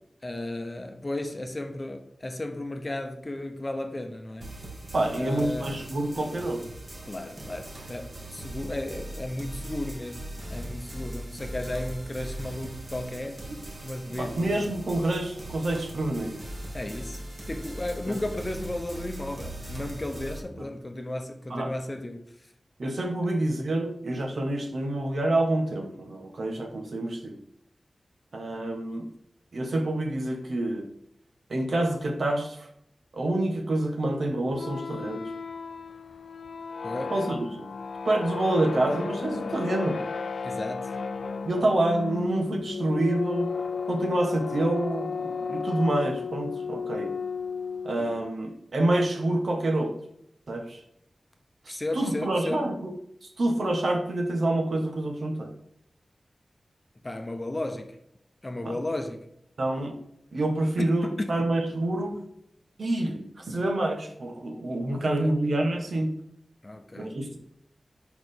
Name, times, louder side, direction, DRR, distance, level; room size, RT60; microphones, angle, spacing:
voice 1, 0.2-4.7 5.2-5.8 7.0-13.5 13.8-14.5 16.7-17.2 17.5-22.5 36.8-37.2 40.4-41.0 51.7-52.7 57.0-58.0 58.4-59.3 60.8-61.5 64.9-65.3 66.6-67.2, left 1 dB, 30° left, 0.8 m, -34 dB
sound 1, 4.4-20.4, right 1 dB, 50° right, 1.9 m, -40 dB
voice 2, 4.9-6.6 14.1-16.4 18.1-18.2 21.5-21.7 22.8-27.4 28.3-29.1 29.5-30.9 31.5-32.7 33.1-35.3 37.1-37.7 38.0-40.0 41.4-43.5 43.9-47.1 47.8-50.0 50.5-50.8 51.6-52.9 53.2-55.5 58.6-58.7 59.6-60.0 60.3-62.2 62.8-66.1 67.0-67.4, right 1 dB, 75° right, 1.3 m, -27 dB
sound 2, 34.5-48.3, left 5 dB, 85° left, 0.4 m, -34 dB
4.8 x 4.3 x 5.2 m
wide cardioid pair, 60°, 0 cm